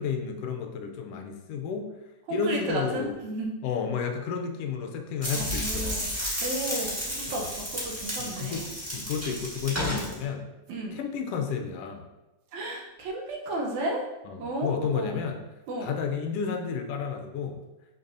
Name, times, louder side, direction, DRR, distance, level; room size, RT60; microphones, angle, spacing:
voice 1, 0.0-1.9 2.3-3.2 3.6-6.1 8.2-8.6 8.9-10.4 10.9-12.1 14.3-15.4 15.8-17.6, left 6 dB, 75° left, 4 dB, 1.5 m, -31 dB
voice 2, 2.3-3.6 5.3-6.1 6.4-8.7 9.9-10.1 10.7-11.0 12.5-14.1 14.4-15.2 15.7-15.9, right 1 dB, 80° right, -1 dB, 2.3 m, -33 dB
sound 1, 5.2-10.1, equal, 10° right, 0.9 m, -32 dB
6.6 x 5.4 x 2.7 m, 1.0 s
omnidirectional pair, 3.3 m